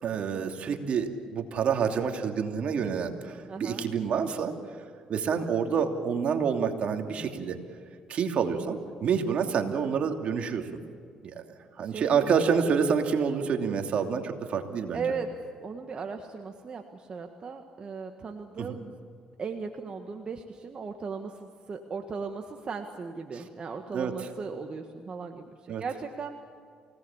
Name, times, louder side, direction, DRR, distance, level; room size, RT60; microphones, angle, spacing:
voice 1, 0.0-4.5 5.1-7.6 8.1-10.8 11.2-11.3 11.8-15.0 18.6-18.8 23.3-23.4 23.9-24.3 25.7-25.8, right 6 dB, 60° right, 5 dB, 2.8 m, -28 dB
voice 2, 3.5-3.9 11.8-12.3 14.9-15.3 15.6-18.9 19.4-26.4, right 5 dB, 40° right, 4 dB, 1.7 m, -37 dB
29.0 x 18.0 x 7.4 m, 2.3 s
supercardioid pair, 70°, 2 cm